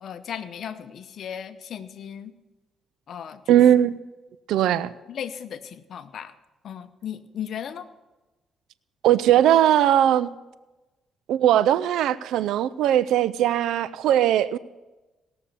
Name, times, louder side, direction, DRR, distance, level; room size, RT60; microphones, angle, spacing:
voice 1, 0.0-2.3 3.1-3.6 5.1-6.3 6.6-7.9, left 8 dB, 60° left, 0.8 m, -36 dB
voice 2, 3.5-4.0 4.5-4.9 9.0-10.3 11.3-14.6, right 11 dB, 85° right, 0.3 m, -19 dB
17.5 x 6.9 x 6.8 m
cardioid pair, 90°, 0 cm